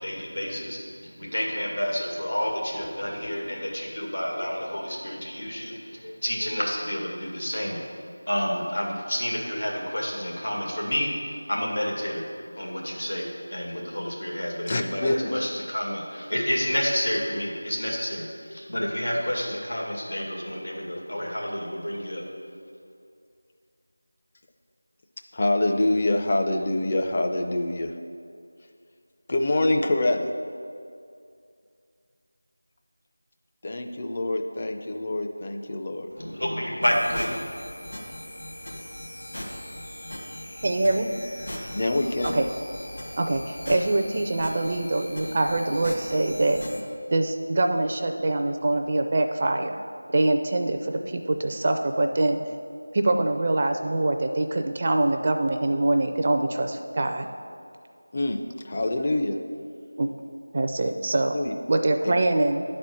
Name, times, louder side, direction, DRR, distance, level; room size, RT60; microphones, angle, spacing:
voice 1, 0.0-7.8 8.3-12.2 12.6-22.2 36.2-37.4, equal, 80° left, -2 dB, 2.2 m, -29 dB
voice 2, 14.7-15.4 25.3-27.9 29.3-30.3 33.6-36.1 41.7-42.4 58.1-58.4 58.6-59.4 61.3-61.5 62.0-62.1, left 2 dB, 30° left, 4 dB, 0.5 m, -25 dB
sound 1, 36.8-46.8, left 1 dB, 65° left, 2.0 m, -39 dB
voice 3, 40.6-41.1 42.2-42.4 43.2-46.6 47.1-49.8 50.1-52.4 52.9-57.3 60.0-60.1 60.5-61.4 61.7-62.6, right 2 dB, 30° right, 5 dB, 0.4 m, -24 dB
10.0 x 4.3 x 6.4 m, 2.3 s
figure-of-eight pair, 175°, 0 cm